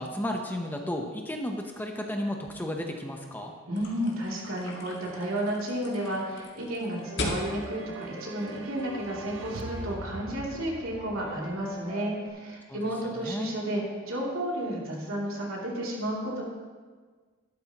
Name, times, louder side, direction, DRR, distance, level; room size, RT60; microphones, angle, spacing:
voice 1, 0.0-3.5 12.7-13.5, left 1 dB, 10° left, 2 dB, 0.8 m, -33 dB
sound 1, 3.7-9.1, left 2 dB, 55° left, 1.8 m, -38 dB
voice 2, 3.7-16.4, right 1 dB, 85° right, -4 dB, 2.9 m, -32 dB
sound 2, 6.8-12.3, right 1 dB, 20° right, 2.0 m, -45 dB
sound 3, 7.3-12.0, right 3 dB, 60° right, 0.6 m, -43 dB
12.5 x 11.5 x 3.0 m, 1.5 s
head